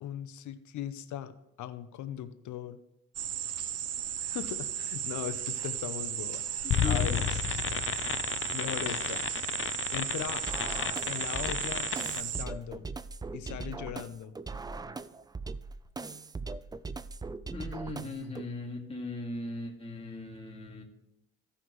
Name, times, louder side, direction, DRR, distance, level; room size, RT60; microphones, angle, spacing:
voice 1, 0.0-2.8 4.3-7.2 7.6-7.8 8.5-9.3 9.9-10.4 11.0-12.8 13.3-14.3, left 10 dB, 75° left, 11 dB, 0.8 m, -39 dB
sound 1, 3.1-12.4, right 10 dB, 55° right, 0.6 m, -35 dB
voice 2, 6.6-7.2 17.5-20.8, left 2 dB, 20° left, -1 dB, 2.3 m, -38 dB
sound 2, 6.7-12.2, left 9 dB, 45° left, 0.6 m, -32 dB
sound 3, 10.5-18.5, right 4 dB, 15° right, 0.3 m, -40 dB
15.5 x 5.7 x 3.1 m, 0.85 s
cardioid pair, 90°, 30 cm